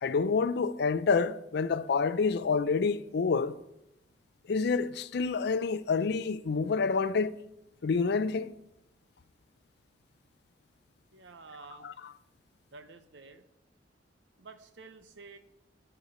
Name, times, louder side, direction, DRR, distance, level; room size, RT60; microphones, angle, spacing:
voice 1, 0.0-3.6 4.5-7.4 7.8-8.5 11.8-11.9, left 4 dB, 65° left, 0.5 m, -28 dB
voice 2, 11.1-11.9 12.7-13.4 14.4-15.4, right 4 dB, 80° right, 0.8 m, -50 dB
13.0 x 4.4 x 5.5 m
head